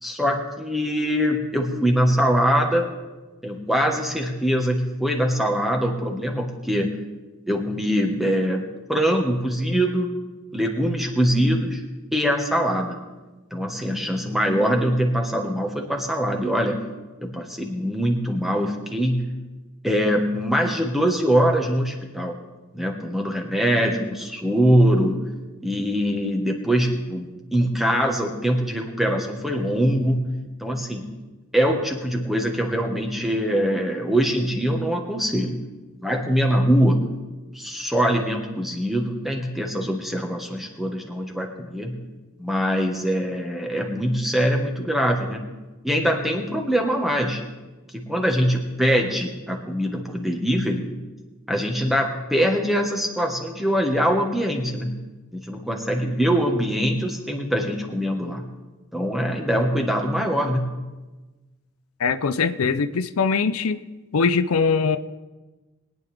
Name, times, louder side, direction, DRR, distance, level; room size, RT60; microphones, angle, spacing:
voice 1, 0.0-2.9 3.4-6.9 7.5-10.1 10.5-11.8 12.1-13.0 13.5-16.8 17.2-19.3 19.8-22.3 22.7-25.2 25.6-30.2 30.6-31.0 31.5-35.6 36.0-37.0 37.5-42.0 42.4-45.5 45.8-47.4 47.9-50.8 51.5-55.0 55.3-58.4 58.9-60.7, equal, ahead, 1 dB, 1.3 m, -23 dB
voice 2, 62.0-63.8 64.1-65.0, left 5 dB, 90° left, 12 dB, 0.6 m, -21 dB
22.0 x 9.5 x 3.5 m, 1.2 s
head